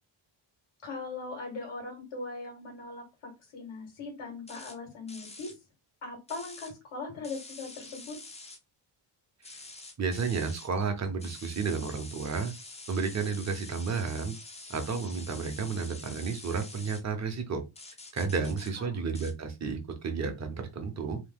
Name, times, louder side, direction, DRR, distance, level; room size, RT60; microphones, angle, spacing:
voice 1, 0.8-5.6 6.0-8.2 18.8-19.0, left 3 dB, 85° left, 0 dB, 1.4 m, -40 dB
sound 1, 4.5-4.8 5.1-5.5 6.3-6.7 7.2-8.6 9.4-10.7 11.2-17.0 17.8-18.7 19.1-19.3, left 3 dB, 15° left, 0.4 m, -47 dB
voice 2, 10.0-12.5 12.9-14.3 14.7-17.6 18.1-21.2, right 5 dB, 35° right, 6 dB, 0.7 m, -32 dB
2.9 x 2.1 x 3.5 m, 0.24 s
wide cardioid pair, 135°, 48 cm